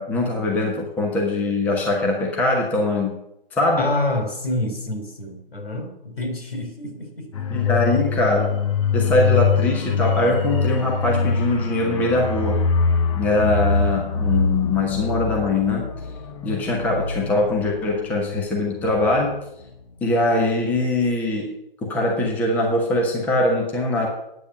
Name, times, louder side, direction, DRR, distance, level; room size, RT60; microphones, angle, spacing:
voice 1, 0.0-3.2 3.5-3.9 7.5-8.5 8.9-12.7 13.2-15.9 16.4-19.4 20.0-21.5 21.8-24.1, left 2 dB, 5° left, 0 dB, 1.0 m, -22 dB
voice 2, 3.8-7.5, left 2 dB, 85° left, 3 dB, 4.4 m, -27 dB
sound 1, 7.3-19.7 20.0-20.2, left 5 dB, 35° left, 1.1 m, -24 dB
8.9 x 8.4 x 6.9 m, 0.83 s
figure-of-eight pair, 150°, 29 cm